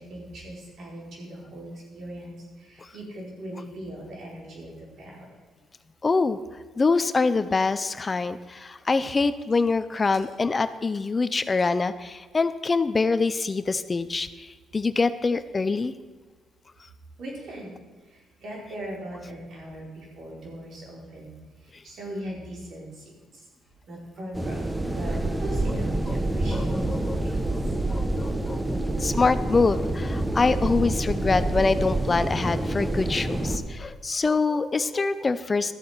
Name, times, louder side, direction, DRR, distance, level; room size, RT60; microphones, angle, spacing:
voice 1, 0.0-5.3 17.2-17.8 18.0-23.5 23.9-27.7, right 1 dB, 65° right, -2 dB, 4.3 m, -40 dB
voice 2, 6.0-6.4 6.8-14.5 14.7-15.9 26.5-27.1 27.9-28.6 29.0-35.7, left 4 dB, 30° left, 13 dB, 0.5 m, -25 dB
sound 1, 24.3-33.6, right 1 dB, 10° right, 1.1 m, -27 dB
13.5 x 7.5 x 5.8 m, 1.4 s
cardioid pair, 90°, 0 cm